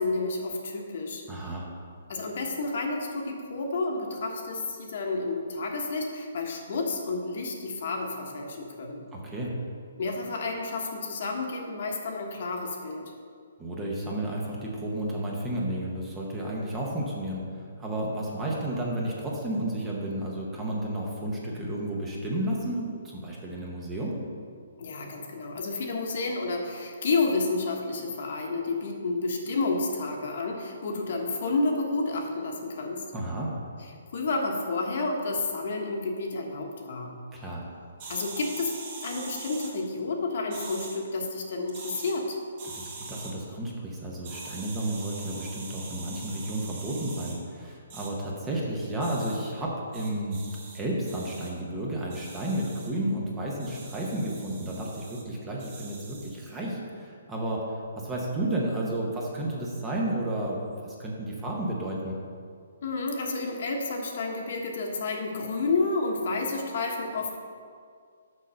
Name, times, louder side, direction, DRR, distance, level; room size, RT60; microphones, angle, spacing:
voice 1, 0.0-1.2 2.1-9.0 10.0-13.1 24.8-33.0 34.1-37.1 38.1-38.7 39.0-42.4 62.8-67.3, left 3 dB, 50° left, 1 dB, 1.2 m, -30 dB
voice 2, 1.3-1.6 9.1-9.5 13.6-24.2 33.1-33.5 37.3-37.6 42.6-50.4 50.7-57.6 58.0-62.2, right 1 dB, 10° right, -3 dB, 0.9 m, -32 dB
sound 1, 38.0-39.7 40.5-41.0 41.7-42.1 42.6-43.3 44.2-47.4 47.9-48.1 49.0-49.4 49.9-50.8 51.1-51.5 52.1-52.9 53.6-55.2 55.6-56.3, right 3 dB, 35° right, 1.4 m, -43 dB
6.3 x 5.6 x 6.3 m, 2.1 s
hypercardioid pair, 170°, 0 cm